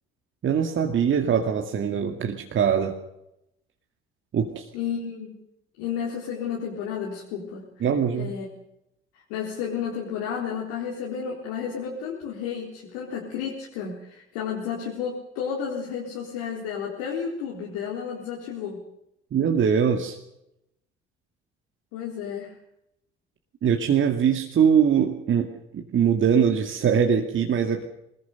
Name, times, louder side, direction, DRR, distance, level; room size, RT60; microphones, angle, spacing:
voice 1, 0.4-2.9 4.3-4.6 7.8-8.3 19.3-20.2 23.6-27.9, right 7 dB, 40° right, 3 dB, 2.3 m, -22 dB
voice 2, 4.7-5.4 5.8-7.9 8.1-8.5 9.3-18.8 21.9-22.5, left 7 dB, 65° left, -2 dB, 4.1 m, -32 dB
24.0 x 20.5 x 6.8 m, 0.83 s
figure-of-eight pair, 55°, 30 cm